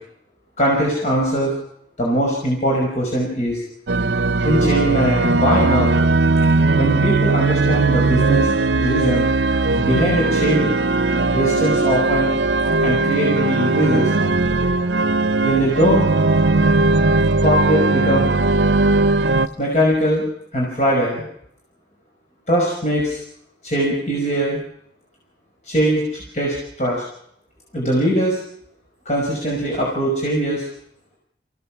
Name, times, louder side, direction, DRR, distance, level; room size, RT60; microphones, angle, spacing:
voice 1, 0.6-1.5 2.0-3.6 4.4-6.0 6.8-9.3 9.8-10.7 11.3-12.3 12.8-14.1 15.4-16.1 17.4-18.3 19.6-20.3 20.5-21.2 22.5-23.2 23.6-24.6 25.7-27.0 27.7-28.4 29.1-30.6, right 1 dB, 40° left, -3 dB, 5.6 m, -20 dB
sound 1, 3.9-19.5, right 3 dB, 70° right, 0.8 m, -18 dB
27.5 x 16.5 x 7.4 m, 0.71 s
head